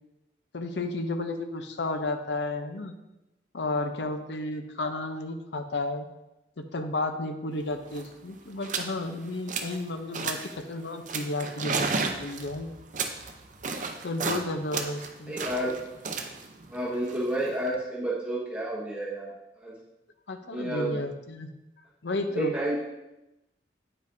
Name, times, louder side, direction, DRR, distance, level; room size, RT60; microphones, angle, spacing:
voice 1, 0.5-2.9 3.5-6.1 6.6-12.7 14.0-15.3 20.3-21.5 22.0-22.5, left 2 dB, 75° left, 7 dB, 0.6 m, -32 dB
sound 1, 7.6-7.7 7.9-8.1 8.6-8.9 9.3-9.8 10.1-10.6 11.1-14.4 14.7-17.8, right 4 dB, 45° right, 0.6 m, -33 dB
voice 2, 15.3-15.8 16.7-19.3 19.6-19.7 20.5-21.0 22.3-22.8, right 1 dB, 5° right, -7 dB, 1.3 m, -30 dB
8.8 x 5.3 x 2.6 m, 0.95 s
head